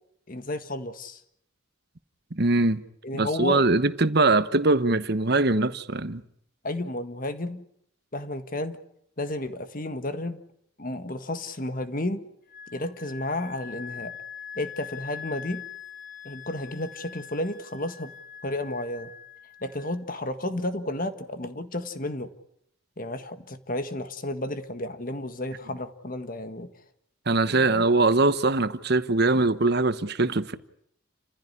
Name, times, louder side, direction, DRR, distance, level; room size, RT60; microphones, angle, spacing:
voice 1, 0.3-1.2 3.0-3.7 6.6-7.6 8.1-8.8 9.2-10.4 10.8-12.3 12.7-14.1 14.5-15.7 16.2-18.1 18.4-19.1 19.6-22.3 23.0-26.7 27.5-27.8, left 1 dB, 40° left, 1.7 m, -32 dB
voice 2, 2.3-2.8 3.1-6.2 27.3-30.5, right 2 dB, 50° right, 1.1 m, -22 dB
Wind instrument woodwind instrument, 12.5-19.9, left 8 dB, 25° right, 4.1 m, -43 dB
29.5 x 15.5 x 9.8 m
head